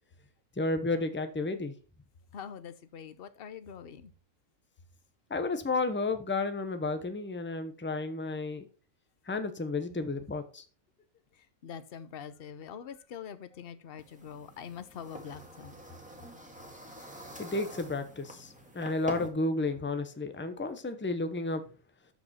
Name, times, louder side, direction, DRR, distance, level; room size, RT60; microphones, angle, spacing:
voice 1, 0.6-1.7 5.3-8.6 9.3-10.6 17.4-21.6, left 2 dB, 10° left, 0.7 m, -32 dB
voice 2, 2.3-4.1 11.6-15.7, left 7 dB, 50° left, 0.9 m, -44 dB
sound 1, 14.0-19.3, right 1 dB, 5° right, 1.8 m, -46 dB
12.5 x 5.2 x 4.3 m
omnidirectional pair, 1.5 m